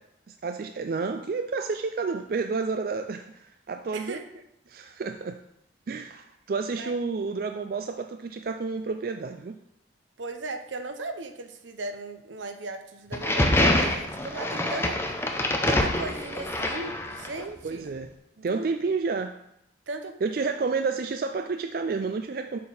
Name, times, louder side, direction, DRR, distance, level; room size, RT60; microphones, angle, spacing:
voice 1, 0.3-4.2 4.7-5.4 5.9-9.6 17.6-18.1 18.4-19.4 20.2-22.6, right 4 dB, 50° right, 6 dB, 0.3 m, -30 dB
voice 2, 10.2-15.0 15.7-17.9 18.4-18.7 19.9-20.2 20.5-20.7, right 3 dB, 80° right, 7 dB, 0.8 m, -37 dB
sound 1, 13.1-17.4, left 1 dB, 15° left, 0.6 m, -25 dB
7.5 x 4.4 x 5.5 m, 0.79 s
head